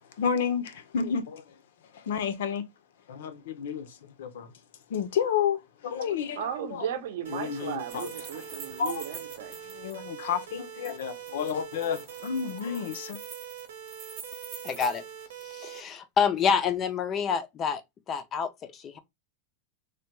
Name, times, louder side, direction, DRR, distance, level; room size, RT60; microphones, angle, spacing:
voice 1, 0.2-1.6 1.9-2.6 3.1-4.5 4.9-6.4 6.7-6.9 7.3-8.5 8.8-9.0 9.7-13.2, left 7 dB, 75° left, 0.6 m, -31 dB
voice 2, 6.4-9.6, right 9 dB, 60° right, 0.6 m, -36 dB
sound 1, 7.2-15.8, right 9 dB, 90° right, 0.8 m, -43 dB
sound 2, 7.9-10.0 10.8-15.0 15.4-15.5, right 7 dB, 25° right, 0.8 m, -45 dB
voice 3, 14.6-15.0 15.4-17.8 18.1-19.0, left 6 dB, 20° left, 0.3 m, -27 dB
3.2 x 2.2 x 2.9 m
supercardioid pair, 180°, 0 cm